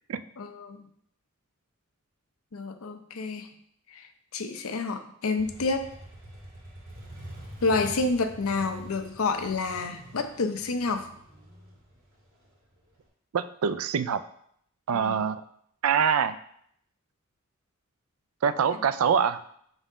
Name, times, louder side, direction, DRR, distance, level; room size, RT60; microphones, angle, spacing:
voice 1, 0.4-0.8 2.5-3.5 3.9-4.1 4.3-5.9 7.6-11.1 14.9-15.2, left 3 dB, 85° left, 7 dB, 0.7 m, -29 dB
Motorcycle, 5.4-13.0, right 1 dB, 70° right, 2.3 m, -46 dB
voice 2, 13.3-14.2 14.9-15.4 15.8-16.4 18.4-19.4, right 7 dB, 85° right, 14 dB, 0.4 m, -24 dB
5.4 x 4.0 x 4.9 m, 0.68 s
head